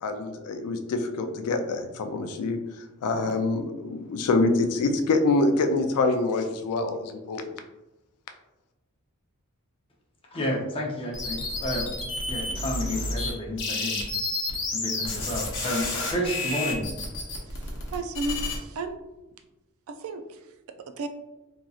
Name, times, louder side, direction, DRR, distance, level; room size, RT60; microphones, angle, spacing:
voice 1, 0.0-2.6 3.0-7.5, left 3 dB, 80° left, 6 dB, 0.4 m, -25 dB
voice 2, 10.3-11.9 12.2-14.0 14.7-16.8, equal, 25° left, -2 dB, 0.6 m, -31 dB
sound 1, 11.1-13.3 13.6-18.6, left 2 dB, 55° left, 0.7 m, -30 dB
voice 3, 17.5-19.0 19.9-21.1, right 3 dB, 65° right, 8 dB, 0.3 m, -35 dB
2.9 x 2.6 x 2.3 m, 1.0 s
head